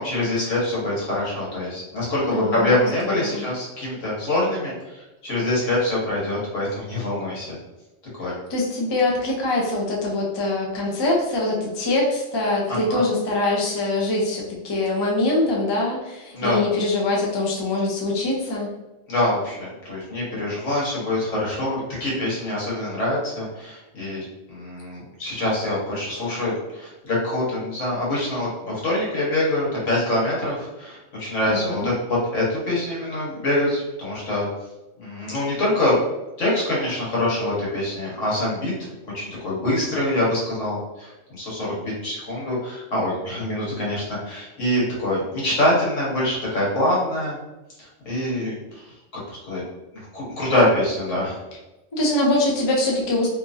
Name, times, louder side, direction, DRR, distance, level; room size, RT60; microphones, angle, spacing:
voice 1, 0.0-7.5 8.1-8.3 12.7-13.0 16.3-16.6 19.1-34.5 35.0-36.0 36.4-38.7 39.1-47.4 47.8-48.9 49.3-49.6 50.1-51.4, left 1 dB, 90° left, -6 dB, 1.5 m, -25 dB
voice 2, 2.3-3.4 8.2-18.7 31.5-31.9 51.9-53.3, left 2 dB, 40° left, -2 dB, 0.4 m, -23 dB
2.9 x 2.4 x 2.5 m, 1.0 s
omnidirectional pair, 1.3 m